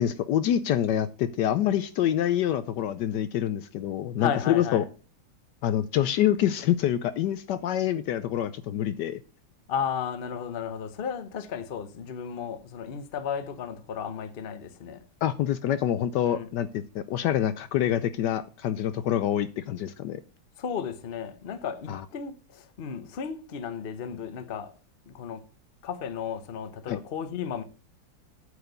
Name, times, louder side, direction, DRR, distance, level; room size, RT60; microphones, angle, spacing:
voice 1, 0.0-4.8 5.6-9.2 15.2-20.2 21.9-22.0 26.9-27.0, left 11 dB, 70° left, 1.1 m, -26 dB
voice 2, 4.2-4.9 9.7-15.0 16.3-16.5 20.6-24.7 25.1-25.5 25.8-27.6, left 7 dB, 45° left, 0.8 m, -34 dB
8.9 x 4.9 x 6.7 m
omnidirectional pair, 2.1 m